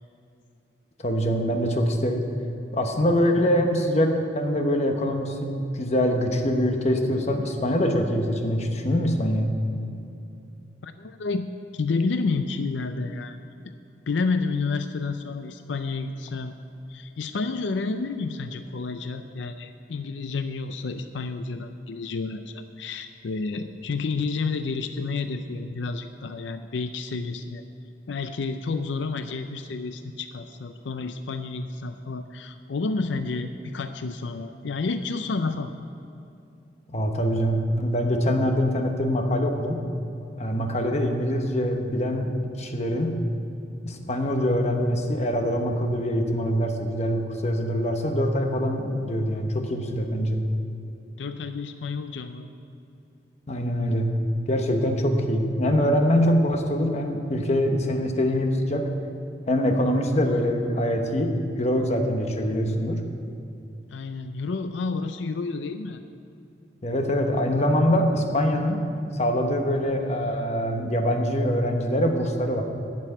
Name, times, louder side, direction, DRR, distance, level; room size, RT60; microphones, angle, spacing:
voice 1, 1.0-2.2 2.7-9.5 36.9-39.8 40.4-42.3 42.6-43.2 43.8-50.4 53.5-54.1 54.5-58.8 59.5-63.0 66.8-68.8 69.1-72.6, equal, 40° left, 4 dB, 1.1 m, -24 dB
voice 2, 10.8-11.5 11.7-13.4 14.1-16.5 16.9-27.6 28.1-35.7 51.2-52.5 63.9-66.0, left 4 dB, 85° left, 9 dB, 0.5 m, -30 dB
11.5 x 6.1 x 8.9 m, 2.7 s
head